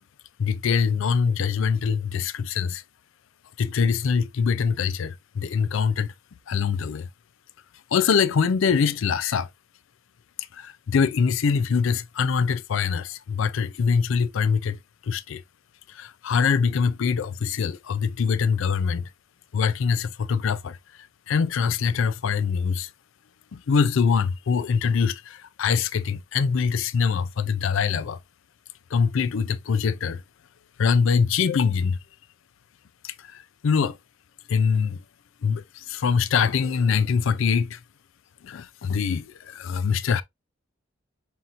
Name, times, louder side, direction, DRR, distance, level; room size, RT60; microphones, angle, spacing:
voice 1, 0.4-2.8 3.6-6.1 6.5-7.1 7.9-9.5 10.5-15.4 15.9-19.1 19.5-20.8 21.3-22.9 23.5-28.2 28.9-30.2 30.8-32.0 33.0-34.0 34.5-35.0 35.4-37.8 38.4-40.2, left 6 dB, 65° left, 0.4 m, -24 dB
5.7 x 2.5 x 2.5 m
head